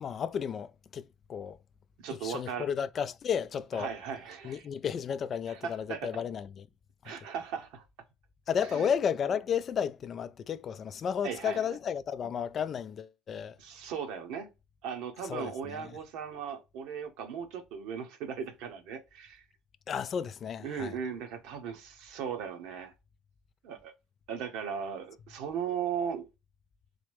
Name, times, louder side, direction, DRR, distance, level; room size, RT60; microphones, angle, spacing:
voice 1, 0.0-1.6 2.2-3.9 4.4-6.6 7.0-7.1 8.5-13.6 15.3-16.0 19.9-20.9, left 7 dB, 45° left, 0.4 m, -33 dB
voice 2, 2.0-2.7 3.7-4.7 5.5-6.1 7.0-7.8 8.6-8.9 11.2-11.8 13.6-14.5 14.8-19.4 20.6-22.9 23.6-23.9 24.3-26.3, right 7 dB, 65° right, 1.0 m, -37 dB
4.0 x 2.4 x 3.4 m
hypercardioid pair, 55°, 0 cm